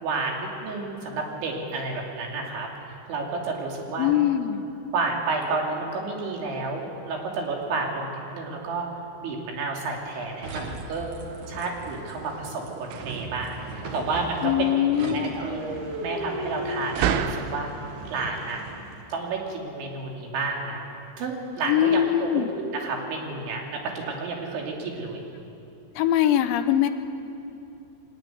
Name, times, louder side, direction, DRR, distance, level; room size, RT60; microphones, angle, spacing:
voice 1, 0.0-4.1 4.9-11.2 11.5-15.6 16.0-17.7 18.1-18.6 19.1-20.9 21.2-25.2, right 3 dB, 70° right, 0 dB, 5.0 m, -31 dB
voice 2, 4.0-4.6 14.4-15.4 21.6-22.5 26.0-26.9, left 11 dB, 80° left, 9 dB, 3.1 m, -22 dB
sound 1, 10.0-17.5, right 9 dB, 85° right, 3.3 m, -35 dB
sound 2, 10.4-19.2, right 1 dB, 55° right, 2.4 m, -37 dB
23.0 x 19.0 x 9.3 m, 2.8 s
omnidirectional pair, 5.6 m